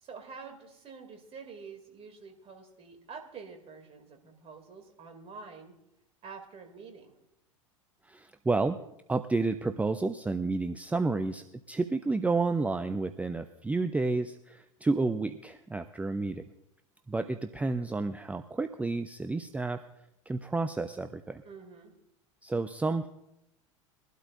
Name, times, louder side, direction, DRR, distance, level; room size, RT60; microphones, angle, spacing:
voice 1, 0.0-5.7 6.2-7.2 21.4-21.9, right 5 dB, 35° right, 5 dB, 2.7 m, -47 dB
voice 2, 8.1-8.8 9.1-16.4 17.1-19.8 20.3-21.4 22.4-23.1, right 3 dB, 10° right, 9 dB, 0.5 m, -30 dB
22.5 x 12.0 x 2.6 m, 0.84 s
figure-of-eight pair, 80°, 17 cm